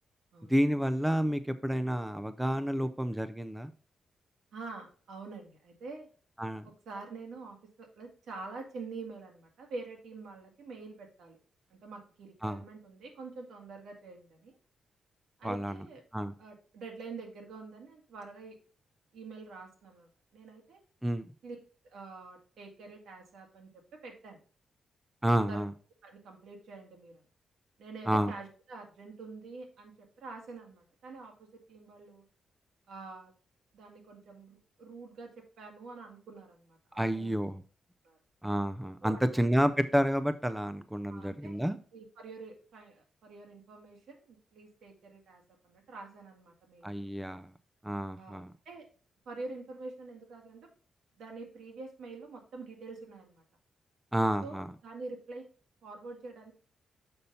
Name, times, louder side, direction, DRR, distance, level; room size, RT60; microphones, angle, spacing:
voice 1, 0.5-3.7 6.4-6.7 12.4-12.6 15.4-15.8 16.1-16.3 21.0-21.3 25.2-25.7 28.1-28.3 36.9-37.6 38.4-41.8 46.8-47.5 47.8-48.5 54.1-54.7, equal, 5° right, 11 dB, 0.4 m, -30 dB
voice 2, 4.5-6.1 6.9-11.4 11.7-14.6 15.4-16.0 16.4-18.6 19.1-20.8 21.4-21.6 21.8-24.4 25.3-25.6 26.0-27.2 27.8-32.3 32.9-33.4 33.7-37.4 38.0-38.2 39.0-39.4 41.1-41.6 41.9-47.1 48.2-48.9 49.3-50.7 51.2-53.4 54.4-55.4 55.8-56.5, right 3 dB, 80° right, 2 dB, 2.0 m, -46 dB
6.9 x 5.4 x 4.2 m, 0.39 s
wide cardioid pair, 160°, 0 cm